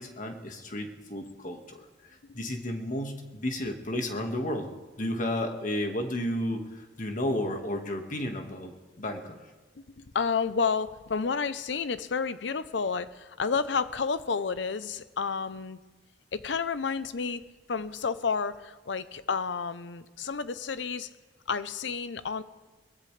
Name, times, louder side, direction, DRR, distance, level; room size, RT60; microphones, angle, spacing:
voice 1, 0.0-4.7 5.0-9.4, left 1 dB, 45° left, 4 dB, 1.8 m, -33 dB
voice 2, 9.8-15.8 16.3-21.1 21.5-22.4, left 5 dB, 90° left, 14 dB, 0.7 m, -31 dB
22.0 x 17.5 x 3.3 m, 1.3 s
head